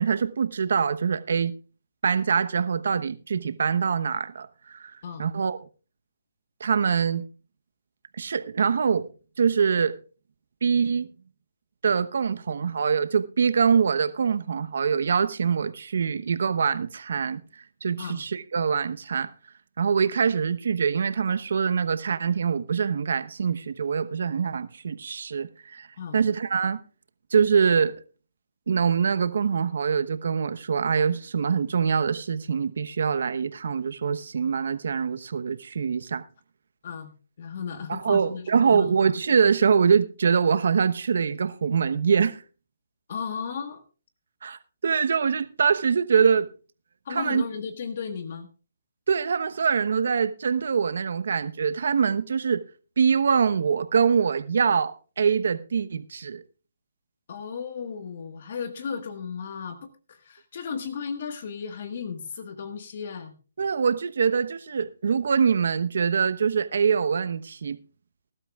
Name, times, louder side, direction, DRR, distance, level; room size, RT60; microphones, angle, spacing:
voice 1, 0.0-1.5 2.0-4.9 5.2-5.6 6.6-7.2 8.2-9.1 9.4-9.9 10.6-11.1 11.8-17.4 17.8-19.3 19.8-25.9 26.1-26.8 27.3-27.9 28.7-36.2 37.9-42.4 44.4-46.5 47.1-47.4 49.1-52.6 53.0-56.4 63.6-67.8, right 6 dB, 65° right, 1.0 m, -24 dB
voice 2, 37.4-38.9 43.1-43.8 47.0-48.5 57.3-63.3, left 6 dB, 50° left, 1.5 m, -35 dB
19.5 x 12.0 x 2.4 m
hypercardioid pair, 150°, 0 cm